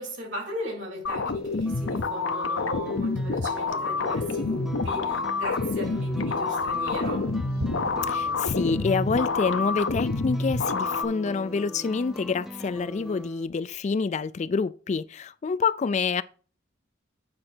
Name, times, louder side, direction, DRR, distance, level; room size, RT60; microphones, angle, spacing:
voice 1, 0.0-7.4, equal, 70° right, 3.7 m, -37 dB
sound 1, 1.0-11.0, left 3 dB, 75° left, 0.7 m, -28 dB
sound 2, 1.2-13.5, right 1 dB, ahead, 0.6 m, -41 dB
Thunder, 1.3-13.2, right 2 dB, 50° right, 0.7 m, -45 dB
voice 2, 8.1-16.2, left 5 dB, 35° left, 0.3 m, -27 dB
8.7 x 5.1 x 4.4 m
head